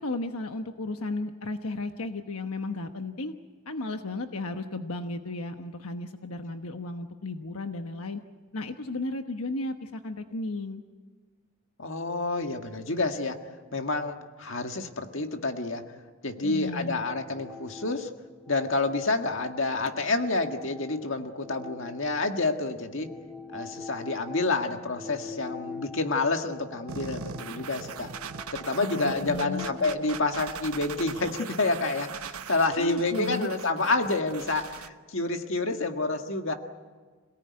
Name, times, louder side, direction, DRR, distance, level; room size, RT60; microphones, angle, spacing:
voice 1, 0.0-3.3 3.7-8.2 8.5-10.8 16.4-17.0 28.8-29.7 32.8-33.5, left 2 dB, 85° left, 6 dB, 1.2 m, -34 dB
voice 2, 11.8-13.4 13.7-15.8 16.2-18.1 18.5-23.1 23.5-28.1 28.5-36.5, left 3 dB, 60° left, 5 dB, 1.8 m, -28 dB
sound 1, 16.7-22.5 22.9-31.1, left 4 dB, ahead, 0.7 m, -45 dB
sound 2, 26.9-34.9, right 6 dB, 85° right, 1.2 m, -40 dB
27.0 x 18.0 x 9.7 m, 1.5 s
head